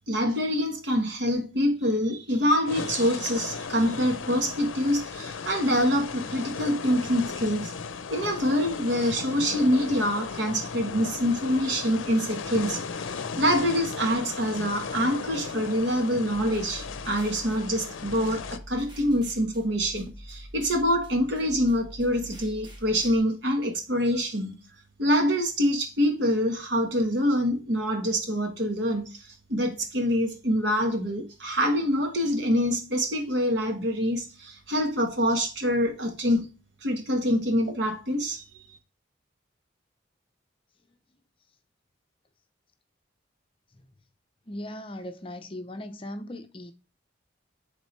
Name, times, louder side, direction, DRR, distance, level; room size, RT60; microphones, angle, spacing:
voice 1, 0.1-7.7 8.1-24.6 25.0-29.2 29.5-36.4 36.8-38.4, equal, 60° right, 1.4 m, -25 dB
sound 1, 2.7-18.6, left 5 dB, 85° left, 0.5 m, -36 dB
sound 2, 16.3-23.2, equal, 25° right, 1.2 m, -45 dB
voice 2, 44.5-46.7, left 1 dB, 25° left, 0.6 m, -38 dB
10.5 x 3.7 x 3.2 m
head